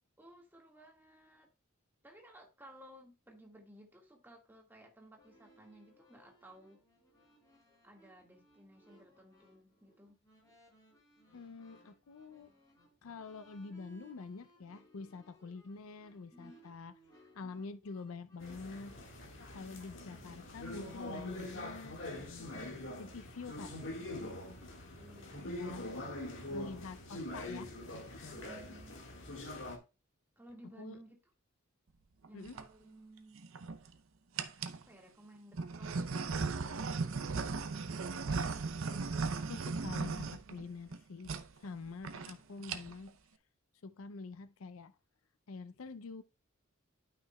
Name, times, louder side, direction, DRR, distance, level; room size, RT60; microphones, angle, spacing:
voice 1, 0.2-1.5 2.0-6.8 7.8-10.2 16.3-16.6 20.3-20.5 25.0-27.0 28.3-29.0 30.4-31.2 32.3-33.5 34.9-37.3, right 1 dB, 10° right, 1.7 m, -57 dB
sound 1, 5.1-19.6, right 1 dB, 20° left, 4.1 m, -65 dB
voice 2, 11.3-12.5 13.0-16.9 17.3-19.0 19.5-23.8 25.4-25.8 26.5-28.4 30.8-31.0 32.3-32.6 39.3-41.3 41.6-43.2 43.8-44.9 45.5-46.2, left 4 dB, 80° left, 0.5 m, -47 dB
sound 2, 18.4-29.8, left 1 dB, 65° left, 1.8 m, -44 dB
sound 3, 32.2-32.6 33.4-33.9 34.4-34.8 35.5-41.0 41.2-41.4 41.7-41.8 42.0-42.3 42.6-43.1, right 4 dB, 75° right, 0.6 m, -37 dB
12.0 x 5.8 x 2.3 m
head